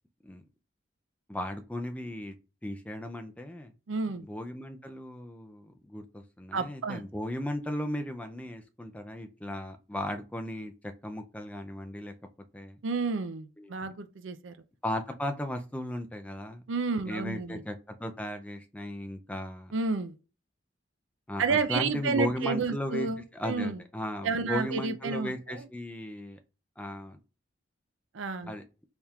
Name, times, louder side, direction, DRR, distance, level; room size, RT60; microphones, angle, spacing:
voice 1, 1.3-2.3 2.6-3.7 4.2-12.1 12.5-12.8 13.6-13.9 14.8-16.6 17.1-17.7 18.0-19.7 21.3-26.4 26.8-27.2 28.5-28.6, left 1 dB, 5° left, 0.4 m, -36 dB
voice 2, 3.9-4.3 6.5-7.0 12.8-14.5 16.7-17.6 19.7-20.1 21.4-23.8 24.2-25.7 28.1-28.5, right 4 dB, 80° right, 0.5 m, -31 dB
4.3 x 3.4 x 2.4 m
head